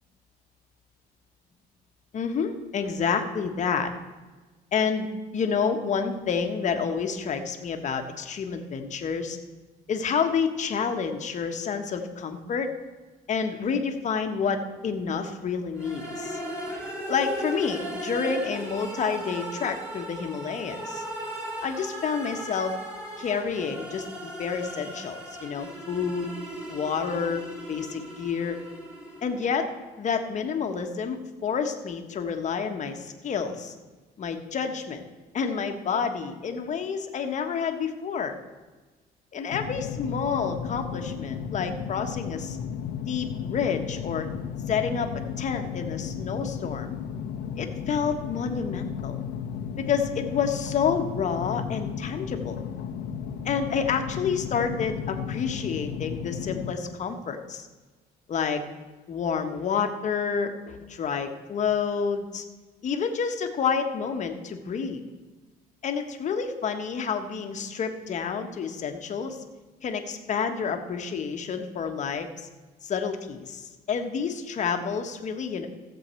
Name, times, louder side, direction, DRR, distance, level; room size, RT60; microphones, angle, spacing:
voice 1, 2.1-3.9 4.7-9.4 9.9-12.7 13.3-16.4 17.1-21.1 21.6-22.7 23.2-24.1 24.4-26.3 26.7-27.4 27.7-28.6 29.2-29.7 30.0-33.7 34.2-35.0 35.3-38.3 39.3-42.6 43.1-44.3 44.7-45.1 45.4-46.9 47.6-49.2 49.8-52.6 53.4-57.7 58.3-58.6 59.1-62.4 62.8-65.0 65.8-69.4 69.8-72.3 72.8-75.7, left 6 dB, 45° left, 5 dB, 1.4 m, -29 dB
sound 1, 15.8-29.6, right 1 dB, 5° right, 3.8 m, -37 dB
sound 2, 39.5-56.7, left 8 dB, 75° left, 1.0 m, -34 dB
15.5 x 7.6 x 4.5 m, 1.3 s
cardioid pair, 110°, 17 cm